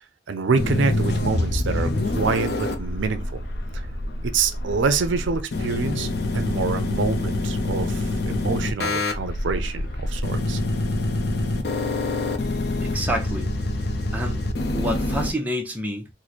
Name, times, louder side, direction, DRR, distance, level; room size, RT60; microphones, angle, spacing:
voice 1, 0.3-3.4 3.7-3.9 4.2-10.6, right 4 dB, 70° right, 0.5 m, -26 dB
sound 1, 0.5-15.3, left 2 dB, 55° left, 0.5 m, -26 dB
voice 2, 12.8-13.5 14.1-14.4 14.7-16.1, equal, 10° right, 0.5 m, -28 dB
3.1 x 2.1 x 4.0 m
head